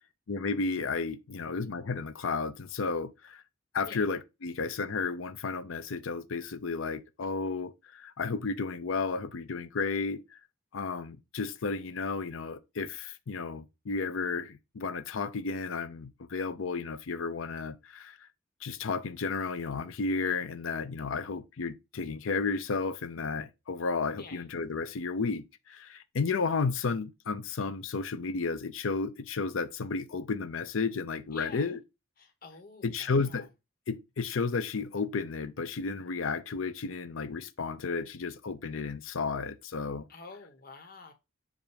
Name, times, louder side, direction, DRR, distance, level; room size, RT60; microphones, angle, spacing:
voice 1, 0.3-3.4 3.7-10.4 10.7-18.3 18.6-31.8 32.8-33.5 33.9-40.1, left 4 dB, 80° left, 0.6 m, -33 dB
voice 2, 31.3-31.7 32.2-33.5 40.1-41.1, left 3 dB, 45° left, 1.4 m, -48 dB
7.3 x 2.6 x 5.0 m
head